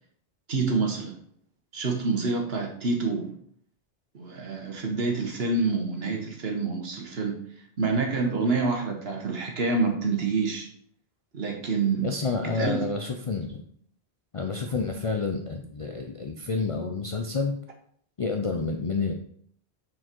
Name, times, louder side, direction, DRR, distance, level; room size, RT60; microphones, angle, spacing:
voice 1, 0.5-1.1 1.7-3.3 4.1-7.4 7.8-10.7 11.3-12.1 12.4-12.8, right 4 dB, 65° right, 3 dB, 1.5 m, -27 dB
voice 2, 12.0-13.6 14.3-17.6 18.2-19.1, left 4 dB, 40° left, 3 dB, 0.6 m, -29 dB
6.3 x 4.7 x 4.5 m, 0.62 s
omnidirectional pair, 1.1 m